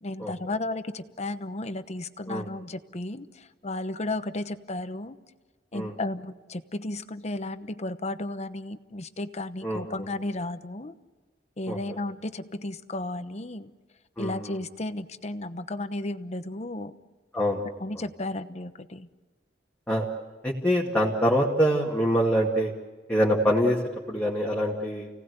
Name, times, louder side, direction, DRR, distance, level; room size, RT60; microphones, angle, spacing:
voice 1, 0.0-5.2 5.7-10.9 11.6-13.7 14.2-16.9 17.8-19.1, left 2 dB, 40° left, 11 dB, 1.0 m, -34 dB
voice 2, 9.6-10.1 11.7-12.0 14.2-14.6 17.3-17.6 17.9-18.0 19.9-20.0 20.4-22.7 23.1-23.8 24.1-25.1, equal, 10° left, -4 dB, 2.4 m, -25 dB
29.0 x 18.5 x 8.1 m, 1.3 s
head